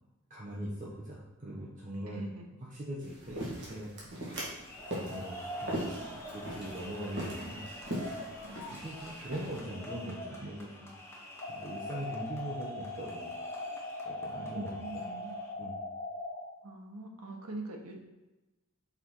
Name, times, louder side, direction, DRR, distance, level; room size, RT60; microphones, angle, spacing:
voice 1, 0.3-2.2 2.7-4.0 4.9-7.6 8.8-10.9 11.5-13.3 14.0-15.1 15.6-15.8, right 1 dB, 35° right, -4 dB, 0.9 m, -41 dB
voice 2, 2.1-2.5 7.0-7.6 8.4-8.8 9.4-9.5 10.0-10.2 14.5-15.4 16.6-17.9, right 2 dB, 90° right, 1 dB, 1.1 m, -44 dB
sound 1, 3.0-9.6, right 1 dB, 50° right, 1.9 m, -40 dB
sound 2, 4.4-15.5, equal, 10° left, 0.8 m, -46 dB
sound 3, 11.4-16.4, left 2 dB, 35° left, 1.1 m, -40 dB
5.7 x 4.1 x 4.6 m, 1.1 s
head